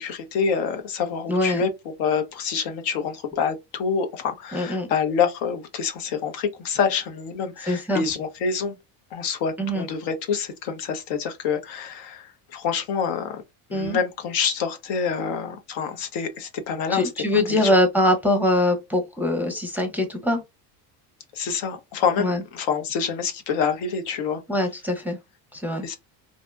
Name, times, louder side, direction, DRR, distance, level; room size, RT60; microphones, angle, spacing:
voice 1, 0.0-8.8 9.1-13.4 13.7-17.7 21.3-24.4 25.8-26.0, left 6 dB, 80° left, 0.8 m, -27 dB
voice 2, 1.3-1.6 4.5-4.9 7.7-8.0 9.6-9.9 13.7-14.0 16.9-20.4 22.2-22.4 24.5-25.2 25.5-25.8, left 1 dB, 5° right, 0.5 m, -23 dB
2.7 x 2.1 x 2.3 m
supercardioid pair, 95°, 45 cm